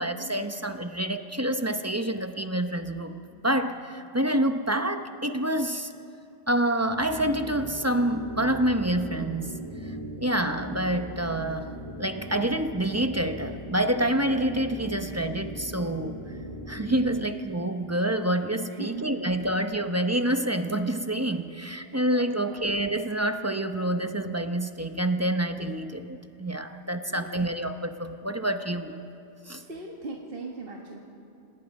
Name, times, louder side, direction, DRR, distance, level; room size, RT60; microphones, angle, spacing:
voice 1, 0.0-3.1 3.4-5.9 6.5-9.6 9.8-11.7 12.0-16.1 16.7-28.9 29.5-29.6, right 1 dB, 15° right, 7 dB, 0.6 m, -27 dB
sound 1, 6.9-17.3, equal, 25° left, 3.0 m, -39 dB
voice 2, 18.7-19.4 21.8-22.0 22.2-22.7 27.1-27.4 29.6-31.0, right 3 dB, 40° right, -1 dB, 1.7 m, -40 dB
27.0 x 19.0 x 5.4 m, 2.6 s
omnidirectional pair, 1.4 m